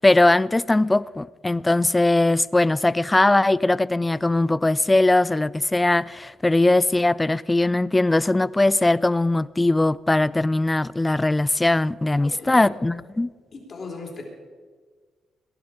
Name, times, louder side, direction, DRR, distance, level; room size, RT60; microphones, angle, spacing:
voice 1, 0.0-13.3, left 2 dB, 15° left, 0.3 m, -20 dB
voice 2, 12.2-12.8 13.5-14.2, left 3 dB, 40° left, 3.6 m, -37 dB
19.0 x 11.0 x 5.0 m
cardioid pair, 90°, 0 cm